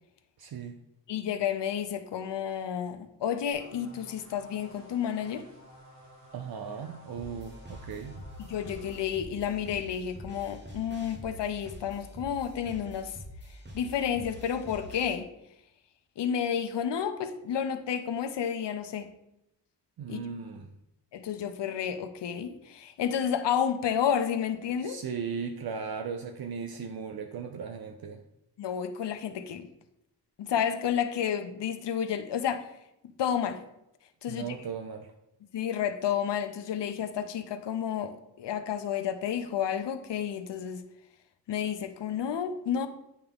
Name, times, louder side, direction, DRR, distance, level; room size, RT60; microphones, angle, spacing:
voice 1, 0.4-0.8 6.3-8.2 20.0-20.7 24.8-28.2 34.3-35.1, right 6 dB, 60° right, 0.5 m, -37 dB
voice 2, 1.1-5.4 8.4-13.2 13.5-15.3 16.2-19.1 20.1-20.2 21.1-25.0 28.6-29.7 30.4-32.7 33.2-33.6 34.2-34.6 35.5-40.8 41.5-42.9, left 8 dB, 85° left, 0.7 m, -31 dB
sound 1, 3.5-9.0, equal, 85° right, 2.6 m, -53 dB
sound 2, 7.2-15.2, equal, 25° right, 1.1 m, -46 dB
9.6 x 3.5 x 3.6 m
wide cardioid pair, 100°, 41 cm